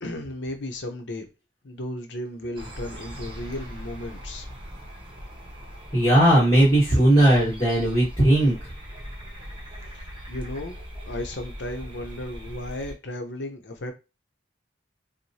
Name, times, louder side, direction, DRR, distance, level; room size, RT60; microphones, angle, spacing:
voice 1, 0.0-1.3 1.6-4.5 9.9-10.8 11.1-13.9, left 1 dB, 70° left, 0.8 m, -34 dB
sound 1, 2.6-12.9, equal, 25° right, 0.9 m, -40 dB
voice 2, 5.9-8.5, right 1 dB, 25° left, 1.4 m, -18 dB
4.6 x 2.2 x 2.7 m
head